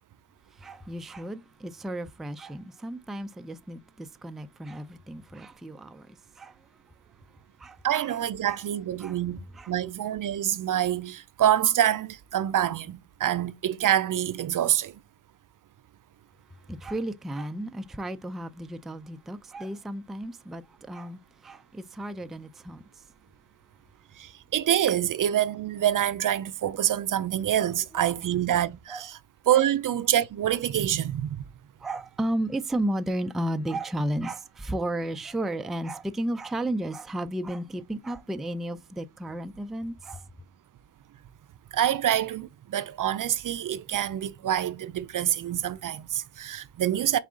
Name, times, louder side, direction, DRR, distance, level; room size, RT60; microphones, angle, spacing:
voice 1, 0.6-6.6 7.6-7.8 8.1-8.2 8.5-8.6 9.0-9.2 9.5-9.7 16.7-23.0 27.6-28.2 28.9-29.1 29.5-29.6 31.8-40.2, right 1 dB, ahead, 0.4 m, -33 dB
voice 2, 7.8-15.0 24.2-29.2 29.5-31.4 41.7-47.2, right 11 dB, 55° right, 0.5 m, -26 dB
4.6 x 2.5 x 3.7 m
supercardioid pair, 50°, 38 cm